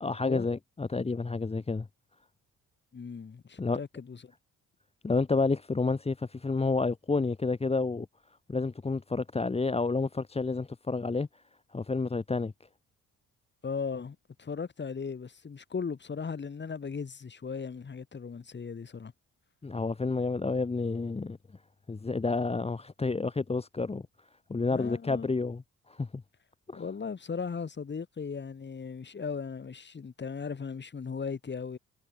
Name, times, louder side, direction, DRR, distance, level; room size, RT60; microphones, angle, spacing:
voice 1, 0.0-1.9 3.6-3.8 5.0-8.1 8.5-11.3 11.7-12.5 19.6-21.4 21.9-24.0 24.5-25.6 25.9-26.2 26.7-26.8, left 3 dB, 20° left, 1.4 m, -30 dB
voice 2, 2.9-4.3 13.6-19.1 24.7-25.3 26.7-31.8, left 5 dB, 35° left, 4.7 m, -37 dB
cardioid pair, 90°, 30 cm